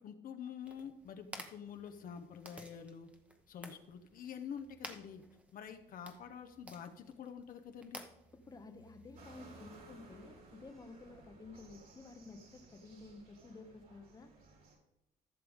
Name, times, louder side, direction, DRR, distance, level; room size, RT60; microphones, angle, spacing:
voice 1, 0.0-3.1 3.5-5.2 5.5-8.0, left 7 dB, 55° left, 7 dB, 1.0 m, -47 dB
sound 1, 0.6-9.6, equal, 5° right, 1.1 m, -54 dB
voice 2, 8.4-14.3, left 3 dB, 20° left, 7 dB, 1.0 m, -53 dB
sound 2, 9.2-14.8, right 2 dB, 60° right, 3.6 m, -58 dB
15.0 x 6.8 x 3.6 m, 0.92 s
cardioid pair, 110°, 17 cm